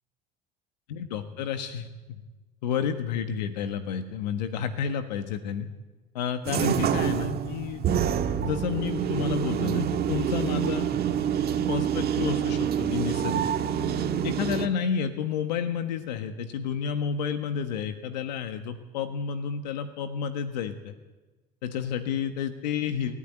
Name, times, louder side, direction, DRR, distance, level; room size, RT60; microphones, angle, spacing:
voice 1, 0.9-2.2 2.6-5.7 6.1-7.8 8.4-10.9 11.7-13.4 14.2-20.9 21.6-23.2, left 7 dB, 90° left, 8 dB, 1.4 m, -30 dB
sound 1, 6.5-14.7, right 9 dB, 50° right, 1.7 m, -27 dB
21.0 x 13.0 x 10.0 m, 1.2 s
hypercardioid pair, 80°, 21 cm